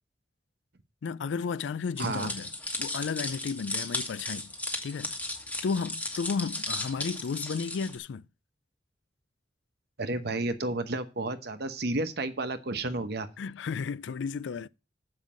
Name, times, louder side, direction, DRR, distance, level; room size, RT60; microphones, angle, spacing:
voice 1, 1.0-2.5 2.8-4.5 4.8-5.2 5.6-8.2 13.4-14.7, left 5 dB, 90° left, 0.4 m, -33 dB
sound 1, 2.0-7.9, left 2 dB, 10° left, 1.5 m, -35 dB
voice 2, 2.0-2.3 10.0-13.3, right 2 dB, 60° right, 1.0 m, -31 dB
7.4 x 5.5 x 7.4 m
head